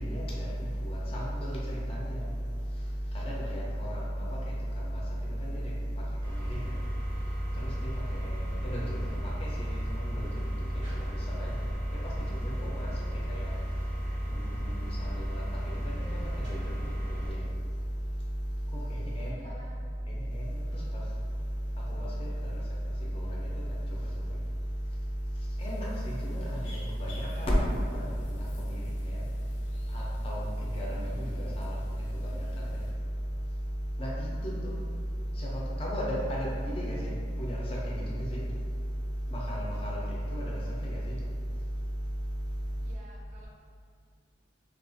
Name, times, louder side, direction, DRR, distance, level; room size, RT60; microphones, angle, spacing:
voice 1, 0.0-42.9, equal, 30° left, -5 dB, 0.4 m, -33 dB
sound 1, 6.2-17.3, equal, 85° right, 0.7 m, -39 dB
voice 2, 19.2-19.8 42.8-43.5, right 1 dB, 40° right, -3 dB, 0.4 m, -53 dB
sound 2, 25.6-32.9, left 1 dB, 85° left, 0.6 m, -52 dB
2.3 x 2.2 x 2.5 m, 2.1 s
head